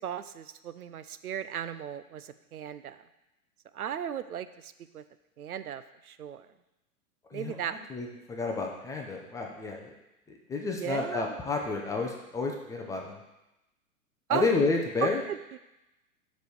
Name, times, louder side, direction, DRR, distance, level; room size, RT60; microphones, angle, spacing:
voice 1, 0.0-3.1 3.7-5.0 5.4-6.5 7.3-7.9 10.8-11.4 14.3-14.5 15.0-15.6, right 9 dB, 80° right, 12 dB, 0.6 m, -36 dB
voice 2, 7.9-9.9 10.3-13.2 14.3-15.2, left 3 dB, 10° left, 0 dB, 0.4 m, -30 dB
5.2 x 5.1 x 6.1 m, 0.94 s
figure-of-eight pair, 105°, 43 cm